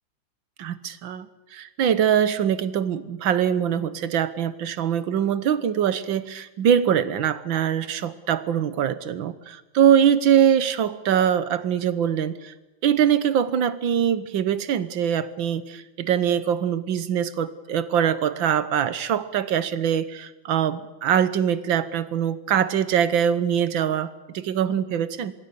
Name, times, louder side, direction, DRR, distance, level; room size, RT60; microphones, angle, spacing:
voice 1, 0.6-12.5 12.8-25.3, right 9 dB, 75° right, 14 dB, 1.8 m, -23 dB
25.0 x 22.0 x 6.9 m, 1.0 s
omnidirectional pair, 2.2 m